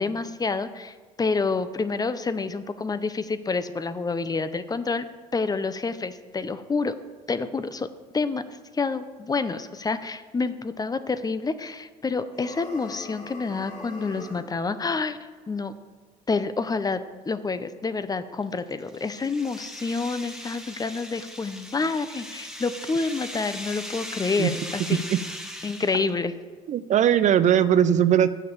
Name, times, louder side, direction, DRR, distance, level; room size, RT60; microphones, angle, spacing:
voice 1, 0.0-5.1 5.3-7.0 7.3-7.9 8.1-15.2 15.5-15.7 16.3-25.0 25.6-26.3, left 4 dB, 25° left, 12 dB, 0.6 m, -28 dB
sound 1, 12.3-14.5, left 3 dB, 50° left, 2.9 m, -41 dB
sound 2, 18.4-26.2, equal, 5° right, 1.2 m, -39 dB
voice 2, 26.7-28.3, right 10 dB, 50° right, 14 dB, 0.4 m, -19 dB
6.7 x 6.5 x 7.2 m, 1.5 s
supercardioid pair, 75°, 16 cm